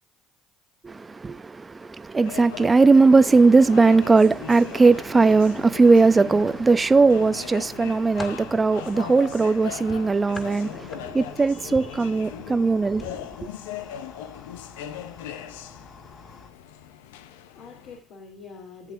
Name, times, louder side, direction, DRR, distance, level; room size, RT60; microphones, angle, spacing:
voice 1, 0.8-13.2, right 4 dB, 25° right, 0.7 m, -19 dB
sound 1, 2.2-18.0, left 10 dB, 85° left, 0.7 m, -40 dB
sound 2, 3.2-16.5, left 4 dB, 45° left, 2.8 m, -48 dB
sound 3, 6.4-7.1 7.6-8.5 9.9-11.3 11.7-12.0 12.9-13.1 13.5-13.6, left 2 dB, 25° left, 2.3 m, -41 dB
voice 2, 16.9-18.9, left 5 dB, 65° left, 3.0 m, -45 dB
16.0 x 8.4 x 2.6 m
hypercardioid pair, 70°, 0 cm